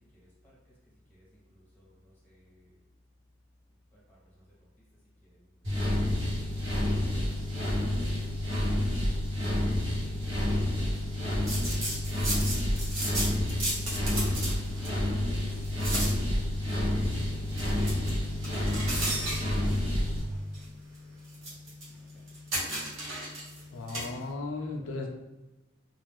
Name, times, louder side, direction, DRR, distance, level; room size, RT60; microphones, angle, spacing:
voice 1, 1.5-2.7 3.9-4.2 10.2-11.7 15.4-16.1 20.3-20.7 22.1-22.2 24.6-25.1, equal, 10° left, -6 dB, 0.9 m, -60 dB
sound 1, 5.6-20.2, left 1 dB, 60° right, 1.1 m, -29 dB
sound 2, 11.4-24.3, right 1 dB, 90° right, 1.1 m, -37 dB
voice 2, 23.7-25.1, left 3 dB, 80° left, 1 dB, 0.4 m, -35 dB
2.3 x 2.3 x 3.4 m, 0.99 s
head